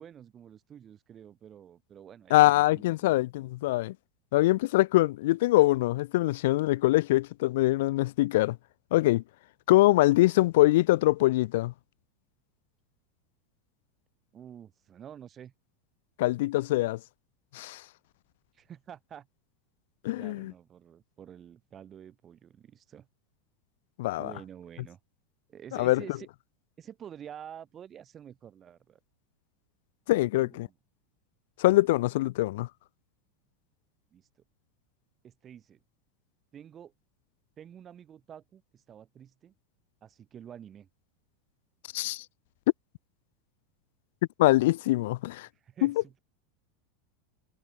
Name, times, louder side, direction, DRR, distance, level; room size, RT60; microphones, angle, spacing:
voice 1, 0.0-3.2 14.3-15.5 18.5-19.3 20.1-23.1 24.2-25.0 25.5-26.3 26.8-29.0 30.2-30.7 34.1-34.3 35.2-35.8 36.5-36.9 37.6-39.5 40.0-40.9 45.5-46.2, right 9 dB, 25° right, 5.7 m, -48 dB
voice 2, 2.3-3.9 4.3-8.6 8.9-9.2 9.7-11.7 16.2-17.0 17.5-17.8 20.0-20.5 24.0-24.3 25.8-26.0 30.1-30.7 31.6-32.7 41.9-42.2 44.4-45.5 45.8-45.9, left 18 dB, 70° left, 0.8 m, -23 dB
supercardioid pair, 135°, 0 cm